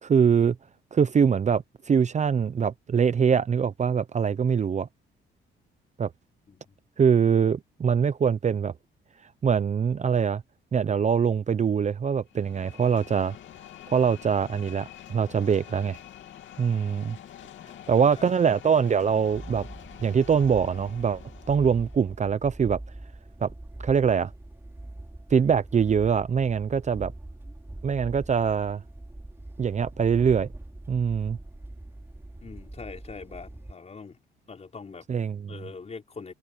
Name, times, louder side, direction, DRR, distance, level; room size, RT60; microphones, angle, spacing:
voice 1, 0.0-0.6 0.9-4.9 6.0-6.1 7.0-8.7 9.4-10.4 10.7-13.3 13.9-16.0 16.6-17.2 17.9-19.7 20.0-21.2 21.5-22.8 23.4-23.5 23.8-24.3 25.3-27.1 27.8-28.8 29.6-30.5 30.9-31.4 35.1-35.4, right 7 dB, 35° right, 0.7 m, -23 dB
sound 1, 12.3-22.1, left 11 dB, 70° left, 2.7 m, -46 dB
voice 2, 17.6-18.4 32.4-34.2 34.5-35.1 35.5-36.3, left 4 dB, 35° left, 4.9 m, -43 dB
sound 2, 19.3-33.7, right 1 dB, 10° right, 5.6 m, -43 dB
cardioid pair, 90°, 20 cm